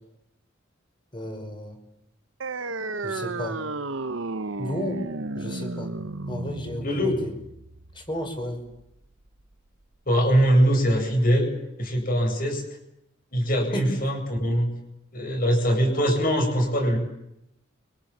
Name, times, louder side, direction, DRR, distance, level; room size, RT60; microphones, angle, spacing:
voice 1, 1.1-1.8 3.0-3.6 4.6-5.0 5.3-5.9 6.3-7.3 7.9-8.6 13.7-13.9, equal, 25° left, 5 dB, 5.5 m, -32 dB
sound 1, 2.4-9.4, right 3 dB, 80° right, 1.2 m, -33 dB
voice 2, 6.8-7.2 10.1-11.5 11.8-12.6 13.3-14.7 15.1-17.0, equal, 45° left, 3 dB, 8.0 m, -22 dB
30.0 x 25.0 x 7.5 m, 0.83 s
head